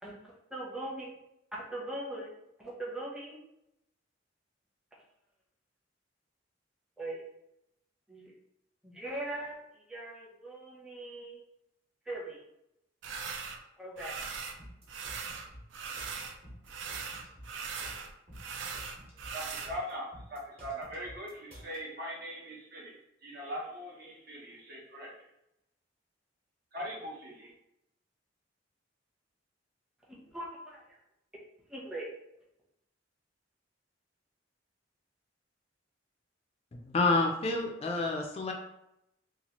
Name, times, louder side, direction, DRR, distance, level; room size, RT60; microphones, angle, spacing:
voice 1, 0.0-1.1 1.5-2.3 2.6-3.4 7.0-7.2 8.1-8.3 8.8-11.4 12.1-12.4 13.8-14.2 30.3-31.0 31.7-32.1, right 1 dB, 5° right, -5 dB, 0.7 m, -40 dB
sound 1, 13.0-13.6 14.0-14.6 14.9-16.4 16.6-19.7, right 5 dB, 70° right, 0.4 m, -40 dB
sound 2, 14.6-21.8, equal, 35° right, 1.0 m, -51 dB
voice 2, 19.3-25.1 26.7-27.5, equal, 55° right, -3 dB, 0.8 m, -41 dB
voice 3, 36.7-38.5, left 3 dB, 35° left, 2 dB, 0.3 m, -29 dB
2.8 x 2.3 x 2.9 m, 0.83 s
head